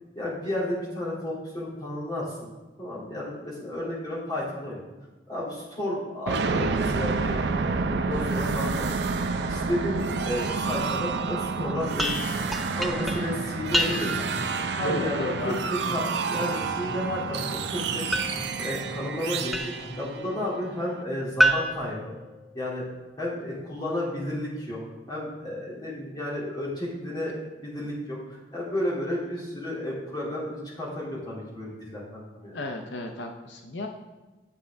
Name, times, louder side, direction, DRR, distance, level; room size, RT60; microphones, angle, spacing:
voice 1, 0.1-2.5 2.8-4.8 5.3-12.3 12.7-14.3 14.7-17.4 17.7-18.0 18.6-22.1 22.5-22.8 23.2-24.8 25.1-32.6, left 1 dB, 25° left, -6 dB, 2.6 m, -32 dB
sound 1, 6.3-20.9, right 4 dB, 75° right, 0.5 m, -29 dB
sound 2, 12.0-14.4 18.1-20.0 21.4-22.9, right 1 dB, ahead, 0.4 m, -29 dB
sound 3, 12.3-20.1, equal, 50° left, 2.7 m, -42 dB
voice 2, 14.8-15.5 32.5-33.9, left 1 dB, 85° left, 3 dB, 0.7 m, -33 dB
8.7 x 7.4 x 3.4 m, 1.2 s
head